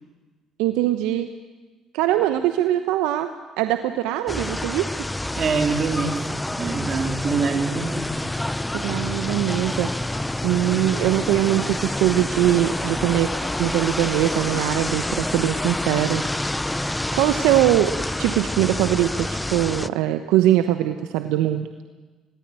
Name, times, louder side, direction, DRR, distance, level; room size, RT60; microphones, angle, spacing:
voice 1, 0.6-1.3 1.9-4.9 8.7-9.9 10.4-13.3 13.6-16.2 17.1-21.7, right 13 dB, 80° right, 8 dB, 1.0 m, -22 dB
sound 1, 4.3-19.9, left 1 dB, 10° left, 0.7 m, -28 dB
voice 2, 5.4-6.3 6.6-8.1, right 4 dB, 50° right, 4 dB, 3.1 m, -24 dB
sound 2, 6.5-11.9, left 2 dB, 30° left, 6.1 m, -43 dB
21.0 x 19.0 x 9.1 m, 1.3 s
hypercardioid pair, 60°, 0 cm